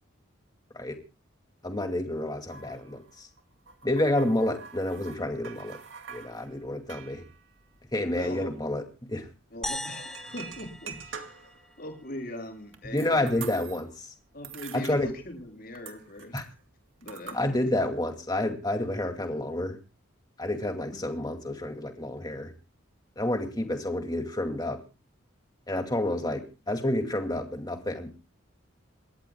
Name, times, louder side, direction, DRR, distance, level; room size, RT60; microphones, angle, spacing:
voice 1, 1.6-3.3 3.8-5.8 6.1-7.2 7.9-8.8 9.1-9.3 12.9-13.9 14.7-15.1 16.3-16.4 17.3-19.8 20.4-22.5 23.2-24.8 25.7-28.2, left 1 dB, 20° left, 4 dB, 2.3 m, -29 dB
sound 1, 2.5-8.5 8.8-8.9 9.1-9.3 10.0-11.7 12.2-14.0 14.3-15.5 15.7-17.4, right 6 dB, 70° right, 2.2 m, -46 dB
voice 2, 8.1-8.5 9.5-11.5 11.8-13.7 14.3-16.4 17.0-17.7 20.9-21.0, left 1 dB, 45° left, 3 dB, 7.2 m, -40 dB
sound 2, 9.6-12.1, left 1 dB, ahead, 0.8 m, -39 dB
28.0 x 14.0 x 2.3 m, 0.31 s
head